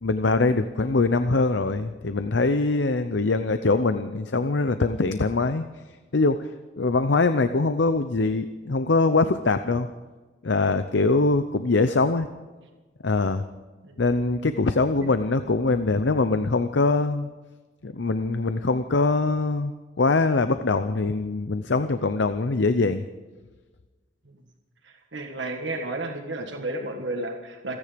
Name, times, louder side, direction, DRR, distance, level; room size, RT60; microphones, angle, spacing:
voice 1, 0.0-5.6 6.1-6.5 6.8-9.9 10.4-12.3 13.0-13.4 14.0-17.3 17.8-23.0, left 3 dB, 75° left, 10 dB, 0.7 m, -23 dB
voice 2, 24.8-27.8, right 2 dB, 80° right, 3 dB, 1.7 m, -32 dB
28.0 x 9.9 x 5.2 m, 1.3 s
head